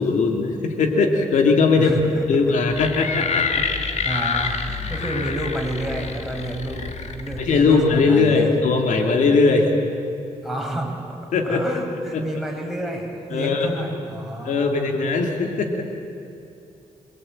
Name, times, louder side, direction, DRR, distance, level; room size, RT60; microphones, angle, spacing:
voice 1, 0.0-1.9 2.3-3.6 7.4-9.7 11.3-11.6 12.1-12.2 13.3-13.7 14.4-15.8, left 4 dB, 85° left, 3 dB, 2.7 m, -19 dB
voice 2, 1.7-2.4 4.0-8.6 10.4-11.2 11.4-14.9, right 1 dB, ahead, -1 dB, 6.5 m, -30 dB
sound 1, 2.7-8.0, left 5 dB, 65° left, 2.1 m, -27 dB
26.5 x 21.5 x 8.9 m, 2.7 s
cardioid pair, 75°, 13 cm